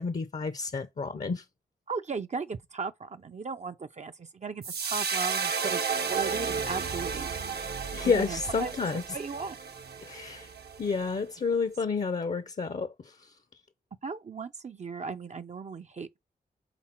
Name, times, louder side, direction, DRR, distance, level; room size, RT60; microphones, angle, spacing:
voice 1, 0.0-1.4 7.6-9.0 10.0-10.5 10.8-13.3, left 5 dB, 45° left, 0.6 m, -30 dB
voice 2, 1.9-5.8 6.1-7.3 8.0-8.7 9.1-9.6 14.0-16.2, right 4 dB, 45° right, 0.5 m, -36 dB
sound 1, 4.6-11.0, right 6 dB, 70° right, 0.8 m, -33 dB
6.0 x 3.6 x 4.4 m
cardioid pair, 55°, 17 cm